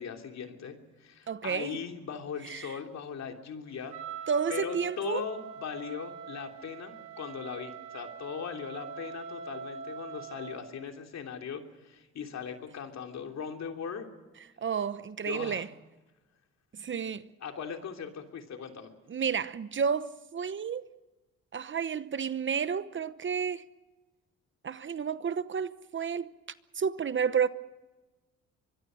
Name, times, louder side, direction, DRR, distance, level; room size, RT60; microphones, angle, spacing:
voice 1, 0.0-4.0 4.5-14.1 15.3-15.6 17.4-18.9, left 7 dB, 60° left, 3.1 m, -39 dB
voice 2, 1.3-1.8 2.5-2.7 4.3-5.3 14.6-15.7 16.7-17.3 19.1-20.9 21.5-23.6 24.6-26.3 26.8-27.5, right 6 dB, 40° right, 0.9 m, -31 dB
Wind instrument woodwind instrument, 3.9-10.7, right 6 dB, 80° right, 3.5 m, -43 dB
24.5 x 22.0 x 6.4 m
cardioid pair, 90°, 30 cm